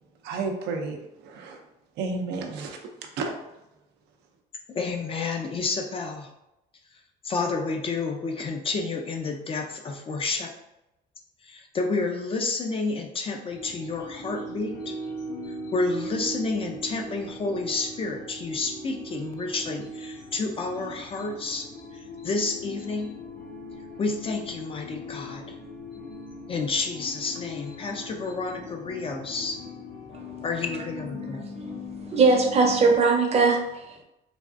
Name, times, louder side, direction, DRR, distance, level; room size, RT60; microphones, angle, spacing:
voice 1, 0.2-1.6 2.0-2.8 3.2-3.3, right 4 dB, 80° right, 3 dB, 0.5 m, -31 dB
voice 2, 4.7-6.3 7.2-10.5 11.4-14.9 15.7-21.7 22.2-23.1 24.0-25.5 26.5-29.6 30.4-31.4, left 3 dB, 35° left, 3 dB, 0.4 m, -30 dB
sound 1, 13.5-33.0, left 1 dB, 65° left, 1.0 m, -39 dB
voice 3, 32.1-34.0, right 4 dB, 40° right, 1 dB, 0.7 m, -20 dB
3.3 x 2.3 x 2.5 m, 0.89 s
cardioid pair, 110°, 17 cm